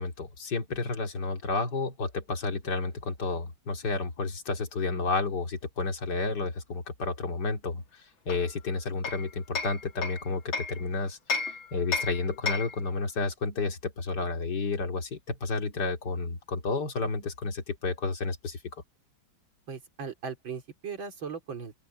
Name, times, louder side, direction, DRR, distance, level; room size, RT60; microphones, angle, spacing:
voice 1, 0.0-11.4 11.7-18.6, left 3 dB, 60° left, 3.0 m, -31 dB
Hammer, 8.3-10.8 11.3-12.9, left 4 dB, 80° left, 2.8 m, -33 dB
voice 2, 19.7-21.8, right 6 dB, 80° right, 3.9 m, -38 dB
open air
omnidirectional pair, 2.1 m